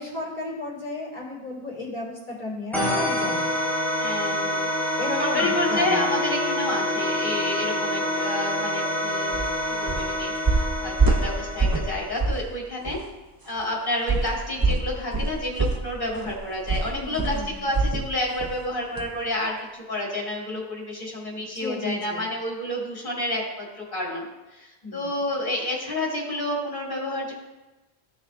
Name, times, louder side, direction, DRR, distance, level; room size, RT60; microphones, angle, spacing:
voice 1, 0.0-3.6 5.0-6.0 16.9-17.6 21.4-22.2 24.8-25.1, left 2 dB, 35° left, -7 dB, 3.5 m, -34 dB
sound 1, 2.7-12.2, left 1 dB, ahead, 1.6 m, -27 dB
voice 2, 4.0-4.7 4.9-9.4 9.7-13.0 13.5-24.2 24.5-27.3, left 1 dB, 50° left, -4 dB, 3.0 m, -30 dB
Mallet percussion, 5.4-9.4, left 8 dB, 65° left, 0.9 m, -34 dB
sound 2, 9.3-9.5 9.9-10.1 10.5-11.9 12.2-12.5 12.8-13.0 14.1-18.1 18.4-18.6 19.0-19.1, right 3 dB, 25° right, 0.6 m, -24 dB
15.0 x 6.2 x 2.7 m, 1.1 s
omnidirectional pair, 1.1 m